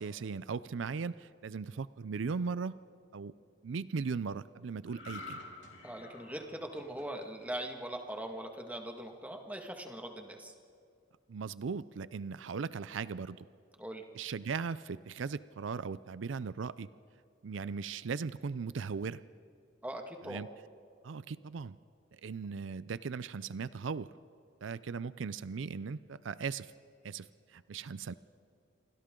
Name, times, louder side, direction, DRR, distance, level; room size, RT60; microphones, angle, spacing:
voice 1, 0.0-2.8 3.1-3.3 3.6-5.4 11.3-13.5 14.1-16.9 17.4-19.2 20.2-20.5 21.0-21.8 22.1-24.1 24.6-26.7 27.0-28.1, right 5 dB, 85° right, 16 dB, 0.5 m, -38 dB
sound 1, 4.9-8.3 8.8-9.0, left 2 dB, 70° left, 3.7 m, -49 dB
voice 2, 5.8-10.5 13.8-14.0 19.8-20.4, right 1 dB, 10° right, 3 dB, 1.8 m, -41 dB
28.5 x 25.0 x 3.8 m, 2.4 s
head